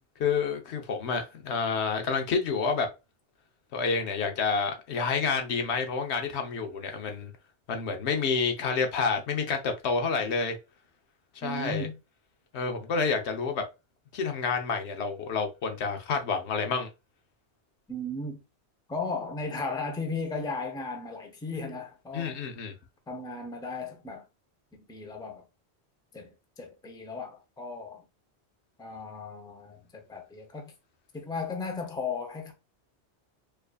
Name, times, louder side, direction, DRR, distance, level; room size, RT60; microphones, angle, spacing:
voice 1, 0.2-2.9 3.7-7.3 7.7-10.6 11.4-11.9 12.5-13.6 14.1-16.9 22.1-22.7, left 5 dB, 80° left, 1.0 m, -29 dB
voice 2, 11.4-12.0 17.9-18.4 18.9-22.4 23.1-24.2 24.7-25.5 26.1-28.0 28.8-30.7 31.1-32.5, left 3 dB, 5° left, 0.5 m, -36 dB
4.6 x 2.5 x 2.3 m
omnidirectional pair, 1.1 m